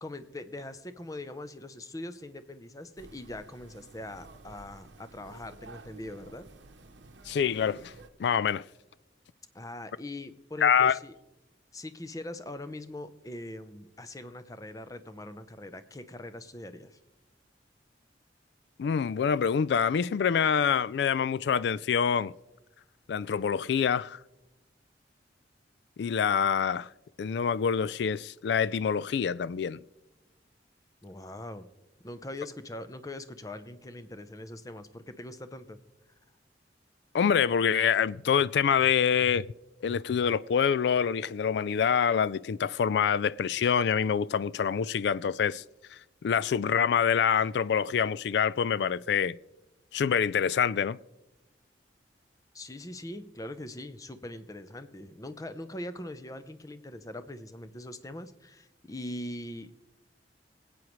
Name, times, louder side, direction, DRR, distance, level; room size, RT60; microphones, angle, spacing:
voice 1, 0.0-6.5 9.5-11.2 11.7-17.0 31.0-31.7 32.0-35.8 52.5-59.7, left 1 dB, 20° left, 0.6 m, -42 dB
sound 1, 3.0-8.1, right 2 dB, 80° right, 0.8 m, -52 dB
voice 2, 7.3-7.9 8.2-8.6 10.6-11.0 18.8-22.3 23.1-24.2 26.0-26.9 27.2-29.8 37.1-39.5 39.8-45.6 46.2-49.4 49.9-51.0, left 7 dB, 65° left, 0.3 m, -26 dB
25.0 x 8.6 x 3.1 m
head